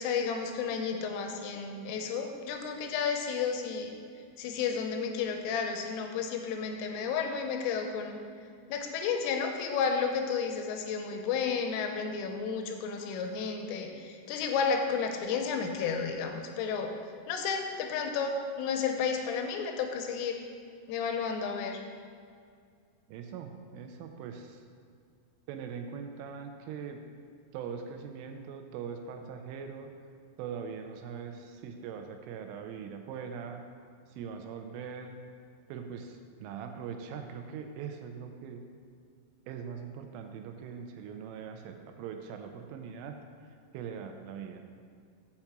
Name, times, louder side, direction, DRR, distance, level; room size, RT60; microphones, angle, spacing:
voice 1, 0.0-4.0 4.4-8.2 8.7-16.9 17.3-20.4 20.9-21.8, left 6 dB, 80° left, 4 dB, 3.2 m, -32 dB
voice 2, 23.1-24.6 25.5-27.0 27.5-29.9 30.4-33.6 34.1-35.2 35.7-38.7 39.5-43.2 43.7-44.6, right 6 dB, 85° right, 5 dB, 3.0 m, -41 dB
6.6 x 5.9 x 7.2 m, 2.2 s
omnidirectional pair, 5.9 m